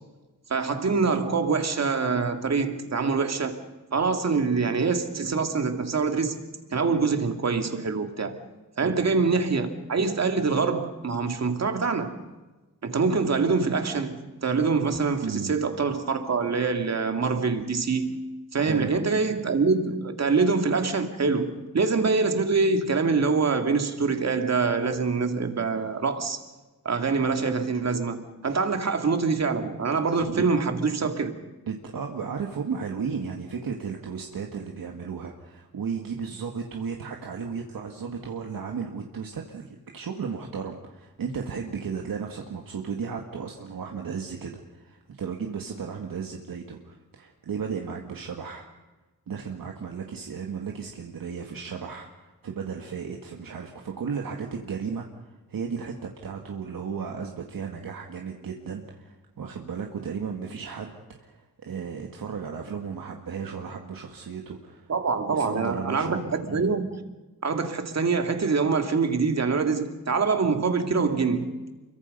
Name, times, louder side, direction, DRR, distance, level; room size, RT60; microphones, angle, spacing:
voice 1, 0.5-3.6 3.9-6.4 6.7-8.3 8.8-12.2 12.8-18.2 18.5-26.4 26.8-31.3 64.9-66.9 67.4-71.5, right 4 dB, 50° right, 2.3 m, -25 dB
voice 2, 15.2-15.6 18.6-18.9 30.3-30.5 31.7-48.7 49.3-64.9 65.3-66.7, right 6 dB, 75° right, 2.0 m, -34 dB
29.5 x 23.5 x 5.4 m
wide cardioid pair, 165°, 34 cm